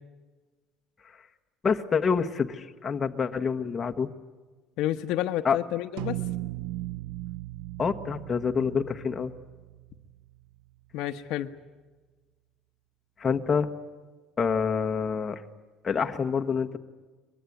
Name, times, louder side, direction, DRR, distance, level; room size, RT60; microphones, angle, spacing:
voice 1, 1.6-4.1 5.4-5.6 7.8-9.3 13.2-13.7 14.4-15.4 15.8-16.8, left 6 dB, 20° left, 5 dB, 1.3 m, -27 dB
voice 2, 4.8-6.2 10.9-11.5, left 13 dB, 65° left, 8 dB, 1.1 m, -30 dB
sound 1, 6.0-10.6, right 16 dB, 75° right, 0.7 m, -37 dB
23.0 x 22.0 x 9.5 m, 1.3 s
cardioid pair, 155°, 0 cm